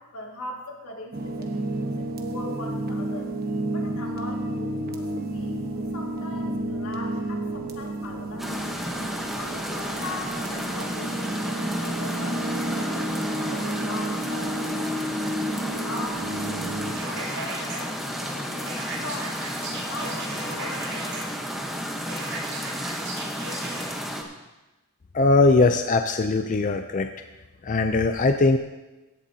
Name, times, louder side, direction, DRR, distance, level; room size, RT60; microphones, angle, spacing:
voice 1, 0.0-3.3 3.7-5.0 5.3-8.7 9.4-15.0 15.6-16.3 16.8-18.7 19.0-20.9, left 2 dB, 80° left, 0 dB, 2.2 m, -40 dB
sound 1, 1.1-16.9, right 1 dB, 45° right, 1.2 m, -31 dB
sound 2, 8.4-24.2, equal, ahead, 1.1 m, -32 dB
sound 3, 16.9-17.8 18.7-21.2 22.1-23.8, right 2 dB, 75° right, 4.7 m, -36 dB
voice 2, 25.1-27.1 27.6-28.6, left 3 dB, 35° left, 6 dB, 0.4 m, -20 dB
16.5 x 11.0 x 2.8 m, 1.1 s
head